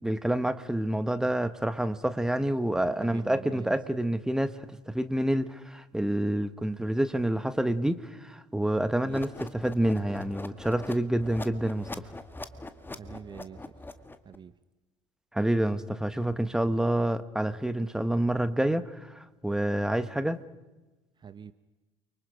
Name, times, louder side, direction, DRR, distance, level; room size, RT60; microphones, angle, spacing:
voice 1, 0.0-11.9 15.3-20.4, right 1 dB, 5° right, 12 dB, 1.4 m, -28 dB
voice 2, 3.0-3.8 9.1-9.2 12.9-13.7 14.2-14.5 21.2-21.5, right 7 dB, 30° right, 13 dB, 0.9 m, -44 dB
sound 1, 9.1-14.4, left 2 dB, 15° left, 1.8 m, -42 dB
29.5 x 24.5 x 5.2 m, 1.1 s
figure-of-eight pair, 60°, 16 cm